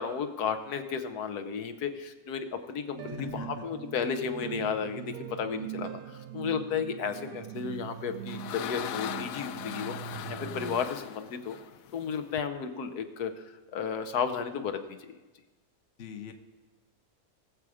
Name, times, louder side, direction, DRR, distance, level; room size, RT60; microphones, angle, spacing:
voice 1, 0.0-9.9 10.3-11.6 11.9-15.2, left 6 dB, 90° left, 7 dB, 1.5 m, -33 dB
sound 1, 2.9-10.8, right 11 dB, 80° right, 1.2 m, -41 dB
voice 2, 3.1-3.6 16.0-16.3, left 8 dB, 55° left, 7 dB, 1.2 m, -41 dB
sound 2, 7.8-12.5, left 11 dB, 70° left, 1.0 m, -39 dB
19.5 x 7.1 x 4.9 m, 1.2 s
omnidirectional pair, 1.6 m